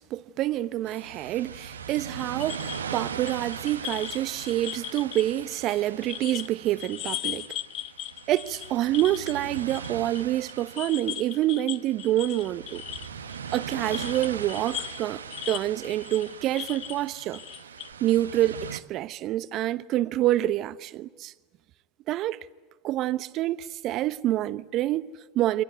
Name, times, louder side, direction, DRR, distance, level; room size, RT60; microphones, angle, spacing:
voice 1, 0.0-7.5 8.3-12.8 13.5-15.2 15.5-17.4 18.0-21.3 22.1-22.4 22.8-25.6, right 14 dB, 50° right, 1.0 m, -27 dB
sound 1, 0.9-18.8, right 7 dB, 85° right, 1.2 m, -40 dB
sound 2, 2.2-6.5 6.8-10.2 10.5-17.9, left 15 dB, 50° left, 1.0 m, -38 dB
29.0 x 25.0 x 8.2 m
hypercardioid pair, 80°, 0 cm